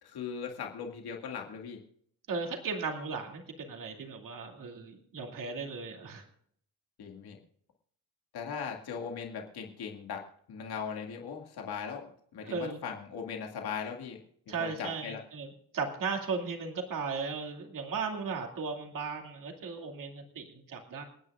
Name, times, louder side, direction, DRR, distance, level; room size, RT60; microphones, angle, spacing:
voice 1, 0.0-1.8 7.0-7.4 8.3-10.2 10.5-14.2 14.5-15.2, left 6 dB, 85° left, 1 dB, 2.2 m, -39 dB
voice 2, 2.3-6.2 12.4-12.8 14.5-15.5 15.7-21.0, right 4 dB, 60° right, 2 dB, 2.5 m, -36 dB
29.0 x 9.7 x 2.4 m, 0.66 s
wide cardioid pair, 160°, 37 cm